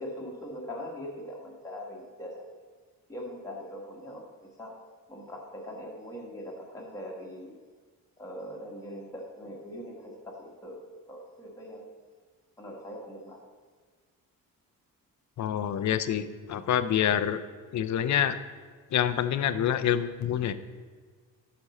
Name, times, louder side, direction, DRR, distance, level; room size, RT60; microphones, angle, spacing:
voice 1, 0.0-2.3 3.1-4.2 4.6-4.7 5.1-7.6 8.2-10.8 11.1-11.9 12.6-13.4, equal, 10° left, -2 dB, 1.4 m, -41 dB
voice 2, 15.4-17.4 17.7-18.4 18.9-20.5, left 9 dB, 55° left, 12 dB, 0.5 m, -27 dB
11.5 x 5.2 x 4.1 m, 1.5 s
cardioid pair, 145°, 35 cm